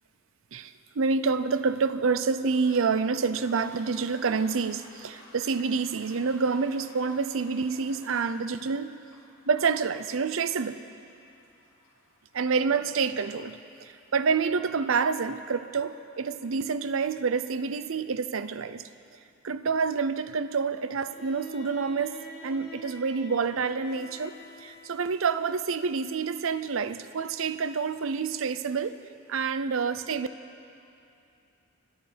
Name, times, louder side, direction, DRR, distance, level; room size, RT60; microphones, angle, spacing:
voice 1, 0.5-9.0 9.5-10.8 12.3-18.8 19.4-29.0 29.3-30.3, right 5 dB, 70° right, 13 dB, 0.6 m, -28 dB
Toilet flush, 2.4-15.8, left 2 dB, 70° left, 2.6 m, -55 dB
Bowed string instrument, 20.9-25.2, left 1 dB, 55° left, 3.5 m, -47 dB
27.0 x 9.1 x 5.1 m, 2.7 s
head